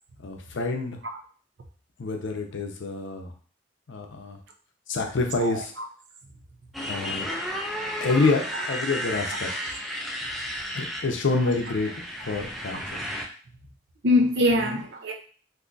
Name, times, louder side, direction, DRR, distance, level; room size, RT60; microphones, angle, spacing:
voice 1, 0.2-1.0 2.0-3.3 3.9-4.4 4.9-5.7 6.9-7.3 8.0-9.8 10.7-11.9 12.2-13.0 14.5-14.8, left 3 dB, 75° left, 0.6 m, -27 dB
voice 2, 5.4-5.9 7.3-7.4 14.0-15.1, left 1 dB, 65° right, 0.6 m, -24 dB
Motorcycle, 6.7-13.3, equal, ahead, 0.4 m, -33 dB
2.7 x 2.3 x 3.8 m
head